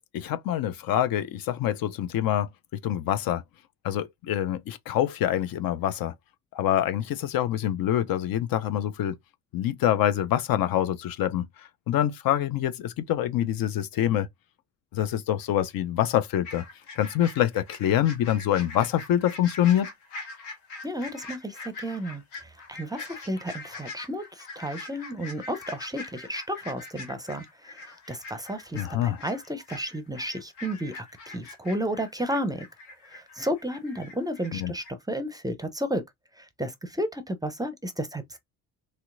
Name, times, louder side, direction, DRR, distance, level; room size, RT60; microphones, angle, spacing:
voice 1, 0.0-2.5 2.8-3.4 3.8-6.1 6.5-9.1 9.5-11.5 11.9-14.3 14.9-16.6 17.0-19.9 28.7-29.2 34.6-34.7, left 11 dB, 55° left, 0.6 m, -25 dB
sound 1, 16.4-34.5 34.8-34.9, left 3 dB, 90° left, 1.2 m, -43 dB
voice 2, 20.8-32.6 33.1-36.0 36.4-38.4, equal, 10° right, 0.6 m, -32 dB
3.1 x 2.8 x 2.5 m
hypercardioid pair, 65°, 43 cm